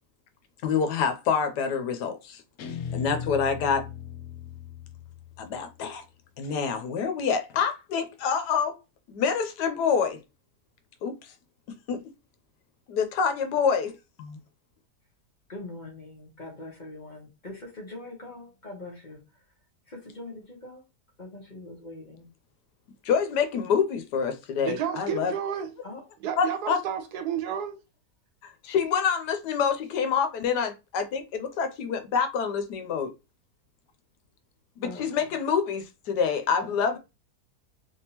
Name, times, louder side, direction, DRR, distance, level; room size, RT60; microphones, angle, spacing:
voice 1, 0.6-2.4 2.9-3.9 5.4-6.0 6.4-8.7 9.1-10.2 11.0-11.2 11.7-12.0 12.9-14.4 23.0-25.3 26.4-26.8 28.6-33.1 34.8-37.0, left 6 dB, 85° left, 1.3 m, -27 dB
Guitar, 2.6-5.8, left 7 dB, 70° left, 1.0 m, -38 dB
voice 2, 15.5-19.2 19.9-20.8 21.2-22.2 25.8-26.0 34.8-35.1 36.6-37.0, left 2 dB, 30° left, 1.2 m, -42 dB
voice 3, 24.6-25.7 26.2-27.8, right 8 dB, 80° right, 1.2 m, -31 dB
3.6 x 3.0 x 2.8 m
omnidirectional pair, 1.7 m